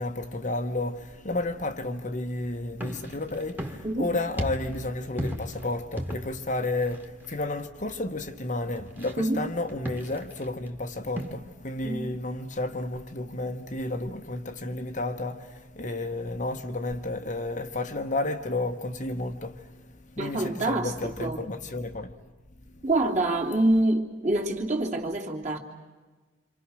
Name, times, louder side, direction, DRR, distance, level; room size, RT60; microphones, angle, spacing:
voice 1, 0.0-22.2, left 2 dB, 35° left, 1.2 m, -32 dB
sound 1, 2.4-11.3, equal, 10° right, 1.9 m, -38 dB
voice 2, 20.2-21.5 22.8-25.6, right 2 dB, 35° right, 2.9 m, -26 dB
27.5 x 27.0 x 6.3 m
head